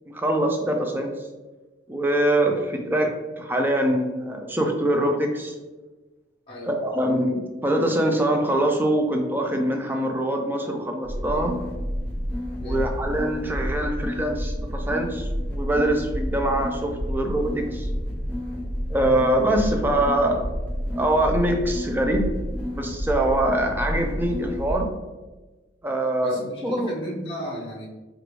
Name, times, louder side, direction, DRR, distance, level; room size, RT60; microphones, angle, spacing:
voice 1, 0.1-1.1 1.9-5.5 6.6-11.6 12.6-17.9 18.9-20.5 20.9-22.3 22.7-24.9 25.8-26.9, right 1 dB, 10° right, 3 dB, 0.4 m, -24 dB
voice 2, 6.5-6.8 12.6-12.9 26.2-27.9, equal, 30° left, -5 dB, 0.6 m, -35 dB
sound 1, 11.0-24.7, equal, 10° left, 0.9 m, -30 dB
4.6 x 2.5 x 3.1 m, 1.2 s
head